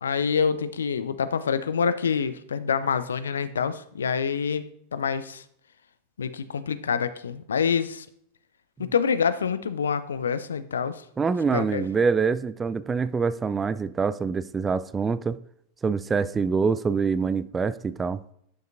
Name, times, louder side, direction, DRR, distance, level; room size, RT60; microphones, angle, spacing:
voice 1, 0.0-5.4 6.2-8.1 8.8-11.0 11.5-11.9, left 6 dB, 70° left, 0.5 m, -26 dB
voice 2, 11.2-15.4 15.8-18.2, right 5 dB, 15° right, 0.3 m, -25 dB
11.0 x 6.4 x 2.5 m
figure-of-eight pair, 90°, 0 cm